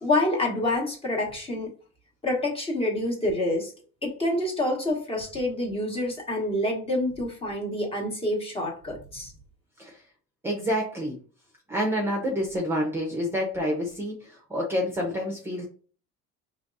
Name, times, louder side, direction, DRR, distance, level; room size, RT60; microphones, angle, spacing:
voice 1, 0.0-1.7 2.2-3.7 4.0-9.3, left 1 dB, 20° left, -1 dB, 1.2 m, -27 dB
voice 2, 10.4-11.2 11.7-15.7, equal, 10° right, -1 dB, 0.8 m, -28 dB
5.0 x 3.1 x 2.6 m, 0.40 s
cardioid pair, 165°, 29 cm